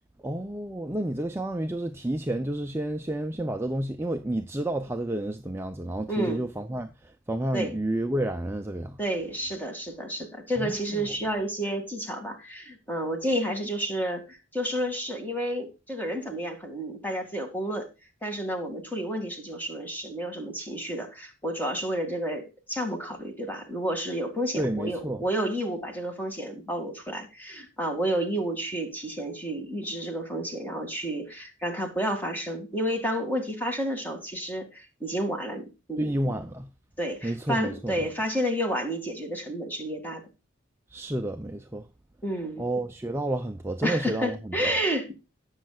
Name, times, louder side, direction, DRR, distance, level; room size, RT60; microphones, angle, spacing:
voice 1, 0.2-9.0 10.6-11.1 24.6-25.2 36.0-36.7 37.2-38.1 40.9-41.9 42.6-44.7, right 1 dB, 10° right, 0.5 m, -30 dB
voice 2, 6.1-6.4 7.5-7.7 9.0-17.9 18.2-36.1 37.0-40.3 42.2-42.6 43.8-45.1, equal, 10° left, 2.2 m, -30 dB
18.0 x 6.5 x 2.4 m
head